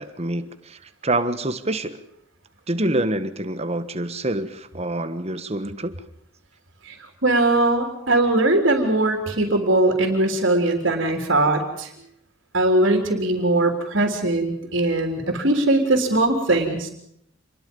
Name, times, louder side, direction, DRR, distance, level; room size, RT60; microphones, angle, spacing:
voice 1, 0.0-2.0 2.7-5.9, right 1 dB, 30° right, 10 dB, 1.3 m, -26 dB
voice 2, 6.8-11.9 12.5-16.9, right 2 dB, 60° right, 2 dB, 3.6 m, -20 dB
27.5 x 22.0 x 5.4 m, 0.75 s
head